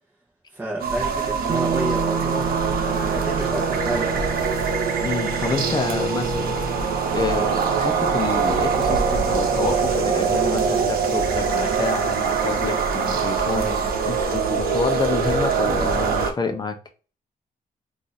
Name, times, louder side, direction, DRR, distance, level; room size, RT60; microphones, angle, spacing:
voice 1, 0.5-4.2 13.5-13.9, right 1 dB, 15° right, 0.8 m, -31 dB
sound 1, 0.8-16.3, right 5 dB, 90° right, 0.8 m, -23 dB
sound 2, 1.5-11.3, right 6 dB, 55° right, 0.4 m, -32 dB
voice 2, 5.0-6.8 7.1-13.7 14.0-16.8, left 4 dB, 30° left, 0.6 m, -28 dB
2.7 x 2.4 x 3.9 m
wide cardioid pair, 145°, 15 cm